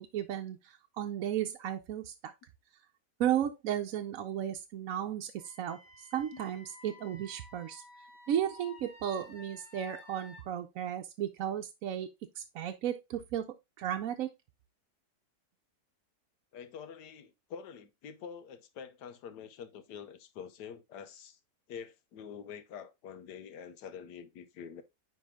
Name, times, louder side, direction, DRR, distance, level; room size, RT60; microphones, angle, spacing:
voice 1, 0.0-2.3 3.2-5.8 6.1-7.8 8.3-12.1 12.4-13.5 13.8-14.3, right 10 dB, 65° right, 1.0 m, -34 dB
Wind instrument woodwind instrument, 5.4-10.4, left 3 dB, 60° left, 3.4 m, -53 dB
voice 2, 16.5-21.4 21.7-24.8, left 7 dB, 85° left, 1.4 m, -46 dB
9.5 x 3.4 x 3.5 m
omnidirectional pair, 1.7 m